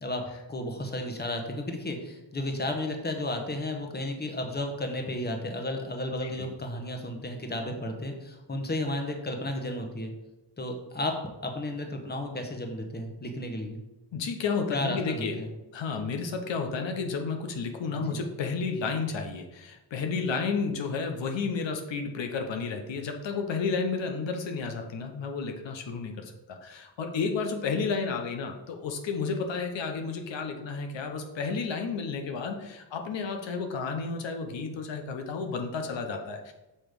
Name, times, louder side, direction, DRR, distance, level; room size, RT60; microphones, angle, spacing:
voice 1, 0.0-10.1 10.6-13.8 14.7-15.5 18.1-18.2, left 1 dB, 25° left, 3 dB, 1.0 m, -33 dB
voice 2, 14.1-15.4 15.7-36.5, left 4 dB, 85° left, 4 dB, 0.8 m, -32 dB
6.5 x 3.0 x 5.1 m, 0.99 s
cardioid pair, 80°, 43 cm